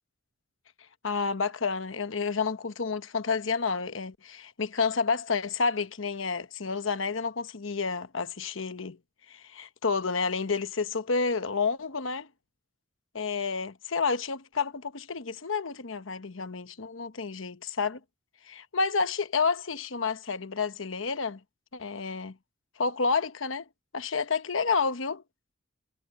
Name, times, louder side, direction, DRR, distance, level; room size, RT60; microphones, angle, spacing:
voice 1, 1.0-9.0 9.3-12.3 13.1-18.0 18.5-21.4 21.7-22.4 22.8-23.6 23.9-25.2, left 5 dB, 70° left, 1.1 m, -30 dB
head